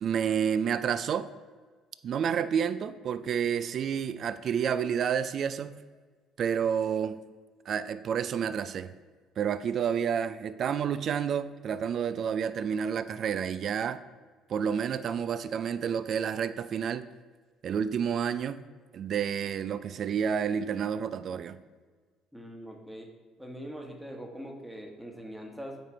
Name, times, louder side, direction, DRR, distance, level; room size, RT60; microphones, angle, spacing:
voice 1, 0.0-1.3 2.0-5.8 6.4-7.2 7.7-8.9 9.4-14.0 14.5-17.1 17.6-18.6 18.9-21.6, right 7 dB, 55° right, 0.3 m, -29 dB
voice 2, 22.3-23.1 23.4-25.8, equal, 5° right, 1.3 m, -42 dB
8.9 x 3.3 x 4.4 m
hypercardioid pair, 65°, 0 cm